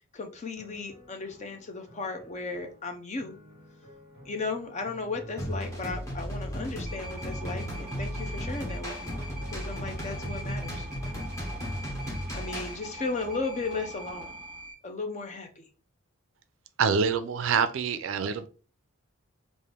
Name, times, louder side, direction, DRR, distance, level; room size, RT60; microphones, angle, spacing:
voice 1, 0.1-3.4 4.3-9.2 9.5-10.9 12.3-14.3 14.8-15.6, left 3 dB, 30° left, 0.5 m, -35 dB
sound 1, 0.6-11.0, left 1 dB, 50° left, 1.9 m, -53 dB
sound 2, 5.4-12.8, equal, 15° left, 0.9 m, -35 dB
sound 3, 6.9-14.7, right 1 dB, 5° right, 1.6 m, -43 dB
voice 2, 16.8-18.5, right 6 dB, 60° right, 0.4 m, -26 dB
3.6 x 2.5 x 3.3 m
head